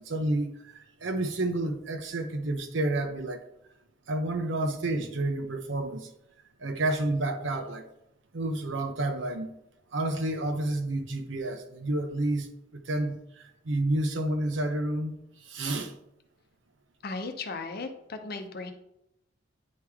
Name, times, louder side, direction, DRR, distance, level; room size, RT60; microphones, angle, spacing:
voice 1, 0.0-3.4 4.1-6.1 6.6-7.9 8.3-9.5 9.9-15.1 15.5-15.9, right 1 dB, 70° right, 0.8 m, -30 dB
voice 2, 17.0-18.7, left 3 dB, 55° left, 0.8 m, -36 dB
9.4 x 3.2 x 3.5 m
head